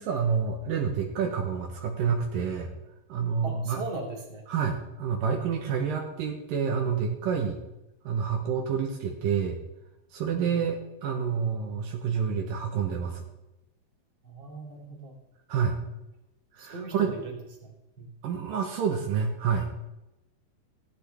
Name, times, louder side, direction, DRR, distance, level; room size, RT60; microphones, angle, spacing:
voice 1, 0.0-2.7 3.1-3.8 4.5-7.6 8.0-9.6 10.1-13.2 15.5-15.8 16.5-17.1 18.2-19.7, right 6 dB, 80° right, 1 dB, 2.9 m, -28 dB
voice 2, 3.4-4.4 10.3-10.6 14.2-15.2 16.6-17.4 17.6-17.7 18.0-18.1, right 3 dB, 35° right, -2 dB, 3.4 m, -39 dB
17.0 x 12.5 x 3.5 m, 0.93 s
omnidirectional pair, 4.1 m